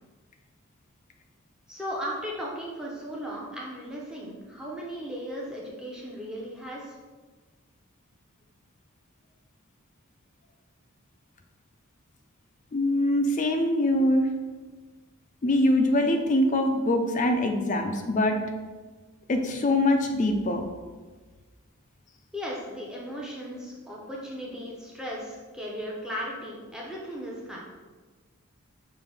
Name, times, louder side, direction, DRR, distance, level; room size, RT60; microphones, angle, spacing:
voice 1, 1.7-7.0 22.3-27.6, equal, 5° right, -4 dB, 0.7 m, -36 dB
voice 2, 12.7-14.3 15.4-18.4 19.3-20.6, left 1 dB, 35° left, 5 dB, 0.4 m, -23 dB
5.7 x 2.6 x 3.4 m, 1.4 s
head